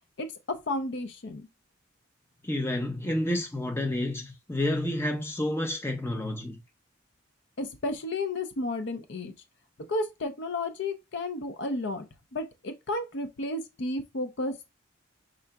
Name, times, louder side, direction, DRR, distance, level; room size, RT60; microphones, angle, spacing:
voice 1, 0.2-1.5 7.6-9.3 9.9-12.1 12.3-14.7, left 2 dB, 55° left, 0.5 m, -32 dB
voice 2, 2.4-6.6, left 1 dB, 10° left, 0.7 m, -29 dB
5.5 x 3.8 x 2.2 m
head